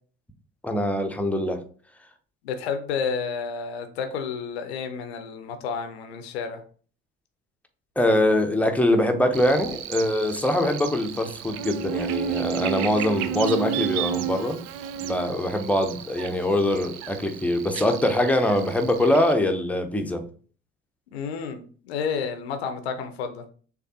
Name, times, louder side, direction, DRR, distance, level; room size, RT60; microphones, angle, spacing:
voice 1, 0.6-1.6 8.0-14.6 15.0-20.2, left 1 dB, 5° left, 0.7 m, -23 dB
voice 2, 2.4-6.6 21.1-23.4, left 6 dB, 70° left, 0.6 m, -30 dB
Buzz, 9.3-19.3, right 10 dB, 55° right, 0.4 m, -32 dB
6.5 x 2.4 x 2.7 m
figure-of-eight pair, 50°, 33 cm